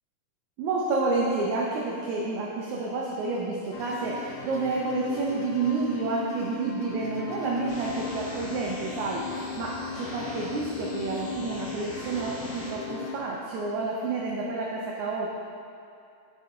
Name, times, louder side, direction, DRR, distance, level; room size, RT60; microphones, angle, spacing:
voice 1, 0.6-15.3, right 3 dB, 80° right, -3 dB, 1.7 m, -29 dB
sound 1, 3.7-13.2, left 5 dB, 85° left, 1.8 m, -38 dB
sound 2, 7.7-12.7, equal, 65° left, 2.5 m, -42 dB
9.9 x 4.0 x 3.7 m, 2.6 s
omnidirectional pair, 4.1 m